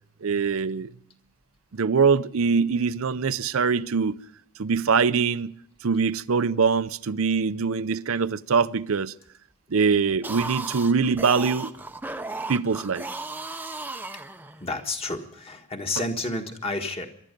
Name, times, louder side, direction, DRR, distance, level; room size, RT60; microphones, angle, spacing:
voice 1, 0.2-0.9 1.7-4.2 4.6-5.5 5.8-9.1 9.7-11.7 12.5-13.0 16.0-16.1, right 5 dB, 70° right, 0.5 m, -23 dB
sound 1, 10.1-14.8, right 2 dB, 10° right, 0.6 m, -35 dB
voice 2, 14.6-17.1, left 2 dB, 25° left, 1.6 m, -30 dB
23.5 x 12.0 x 5.2 m
head